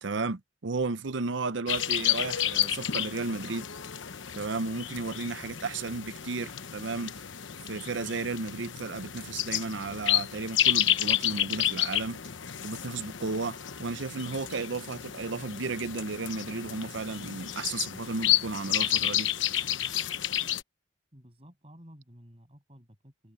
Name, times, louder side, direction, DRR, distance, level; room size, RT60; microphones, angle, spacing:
voice 1, 0.0-3.7 4.4-7.2 7.7-12.2 12.6-19.3, right 3 dB, 80° right, 0.7 m, -34 dB
sound 1, 1.7-20.6, left 11 dB, 85° left, 1.0 m, -31 dB
voice 2, 21.1-23.3, equal, 30° right, 7.3 m, -53 dB
head